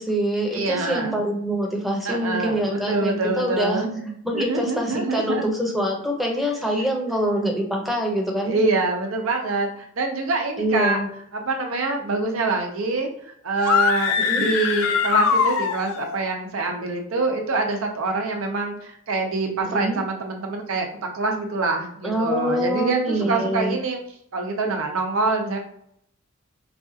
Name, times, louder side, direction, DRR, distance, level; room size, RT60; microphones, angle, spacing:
voice 1, 0.0-3.8 4.2-8.6 10.6-11.1 14.2-14.5 19.6-20.0 22.0-23.8, equal, ahead, -1 dB, 0.7 m, -25 dB
voice 2, 0.5-1.1 2.0-5.5 8.4-11.0 11.3-20.9 21.1-24.0 24.3-25.6, right 3 dB, 80° right, 3 dB, 0.7 m, -25 dB
sound 1, 13.6-16.2, left 6 dB, 75° left, 0.4 m, -22 dB
4.0 x 2.3 x 2.7 m, 0.71 s
head